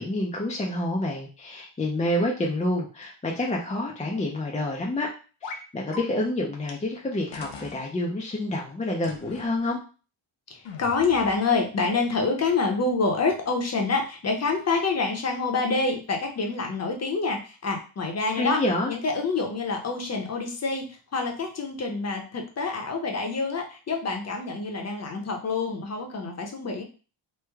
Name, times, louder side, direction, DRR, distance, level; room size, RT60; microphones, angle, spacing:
voice 1, 0.0-5.1 5.4-9.8 18.3-18.9, left 1 dB, 15° left, -1 dB, 0.4 m, -28 dB
sound 1, 5.4-5.6 5.9-6.0 6.7-6.8 7.3-7.8 9.0-9.5 10.7-11.4, left 4 dB, 70° left, 0.8 m, -40 dB
voice 2, 10.5-18.6 18.9-26.8, left 4 dB, 35° left, 2 dB, 0.8 m, -27 dB
3.2 x 2.1 x 3.4 m, 0.35 s
cardioid pair, 125°, 48 cm